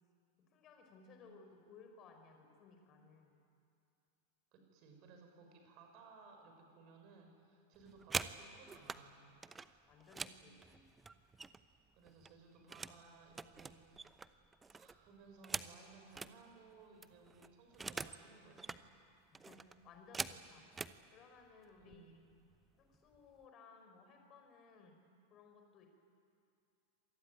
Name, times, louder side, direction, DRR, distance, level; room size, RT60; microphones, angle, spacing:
voice 1, 0.5-3.4 9.9-10.9 19.4-20.7 21.1-22.0 22.8-24.9 25.3-25.9, left 4 dB, 30° left, 4 dB, 4.9 m, -60 dB
voice 2, 4.5-9.4 11.9-14.3 14.7-19.0 21.8-22.2, right 4 dB, 40° right, 3 dB, 6.3 m, -60 dB
sound 1, 7.7-9.0 9.4-11.8 12.1-13.0 13.3-16.3 16.7-16.8 17.0-18.2 18.5-18.8 19.3-21.0 21.8-22.0 22.3-22.6 22.9-23.4, right 4 dB, 15° right, 0.8 m, -45 dB
26.5 x 19.0 x 9.1 m, 2.6 s
figure-of-eight pair, 90°, 0 cm